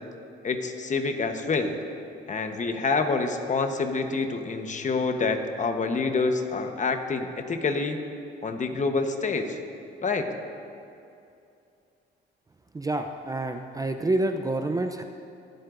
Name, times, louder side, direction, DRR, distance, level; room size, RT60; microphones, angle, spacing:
voice 1, 0.4-1.8 2.3-8.0 8.4-9.6 10.0-10.3, left 4 dB, 40° left, 6 dB, 1.0 m, -27 dB
voice 2, 12.7-15.0, right 2 dB, 15° right, 6 dB, 0.5 m, -28 dB
23.0 x 7.7 x 2.5 m, 2.6 s
cardioid pair, 90°, 20 cm